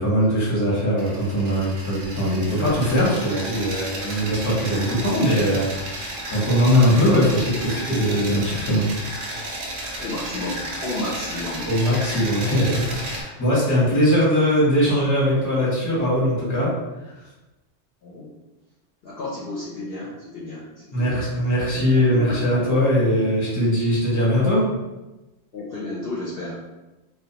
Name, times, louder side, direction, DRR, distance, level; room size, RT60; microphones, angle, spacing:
voice 1, 0.0-8.9 11.6-16.7 20.9-24.7, equal, 20° left, -6 dB, 0.7 m, -21 dB
sound 1, 1.0-13.2, right 1 dB, 60° right, 0.6 m, -33 dB
voice 2, 10.0-11.7 18.0-18.3 19.0-21.2 21.9-22.8 25.5-26.6, left 2 dB, 60° left, -6 dB, 0.7 m, -32 dB
2.3 x 2.1 x 2.8 m, 1.0 s
omnidirectional pair, 1.2 m